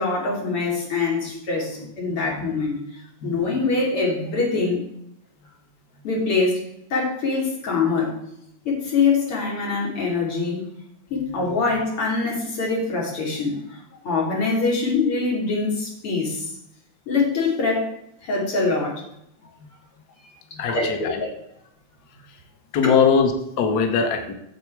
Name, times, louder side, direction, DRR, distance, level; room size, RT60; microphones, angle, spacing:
voice 1, 0.0-2.8 3.2-4.8 6.0-6.6 6.9-8.1 8.7-10.7 11.1-13.8 14.0-16.5 17.1-17.9 18.2-19.0 20.7-21.3 22.8-23.0, left 4 dB, 50° left, -3 dB, 3.5 m, -24 dB
voice 2, 1.8-2.4 3.2-3.3 11.4-11.5 20.5-21.2 22.7-24.3, left 6 dB, 75° left, 6 dB, 0.8 m, -22 dB
8.7 x 7.2 x 4.6 m, 0.77 s
omnidirectional pair, 3.3 m